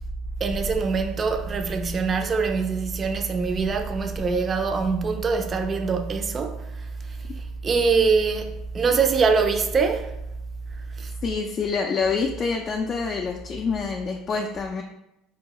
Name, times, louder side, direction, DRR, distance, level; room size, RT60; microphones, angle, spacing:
voice 1, 0.4-6.6 7.1-7.2 7.6-10.1 11.0-11.1, right 4 dB, 35° right, 0.4 m, -23 dB
voice 2, 11.2-14.8, left 5 dB, 40° left, 0.4 m, -27 dB
4.6 x 2.2 x 2.9 m
hypercardioid pair, 75°, 0 cm